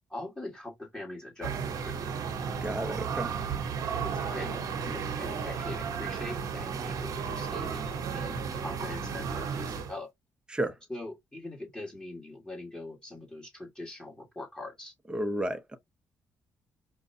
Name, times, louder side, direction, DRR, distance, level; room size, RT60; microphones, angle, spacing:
voice 1, 0.1-2.1 3.9-10.1 10.9-14.9, left 2 dB, 10° left, 1.8 m, -42 dB
sound 1, 1.4-9.9, right 6 dB, 70° right, 0.9 m, -34 dB
voice 2, 2.6-3.3 10.5-10.8 15.1-15.8, right 1 dB, 15° right, 0.7 m, -32 dB
5.0 x 2.2 x 2.7 m
cardioid pair, 65°, 6 cm